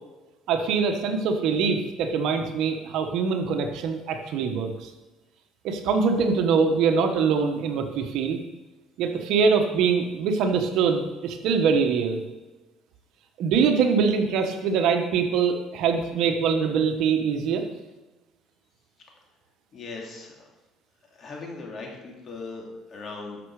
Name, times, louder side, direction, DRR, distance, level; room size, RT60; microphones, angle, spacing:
voice 1, 0.5-4.9 5.6-8.4 9.0-12.2 13.4-17.6, right 5 dB, 70° right, 5 dB, 1.3 m, -23 dB
voice 2, 19.7-20.5 21.1-23.4, left 3 dB, 45° left, 0 dB, 2.8 m, -39 dB
12.5 x 6.2 x 4.9 m, 1.2 s
cardioid pair, 110°, 0 cm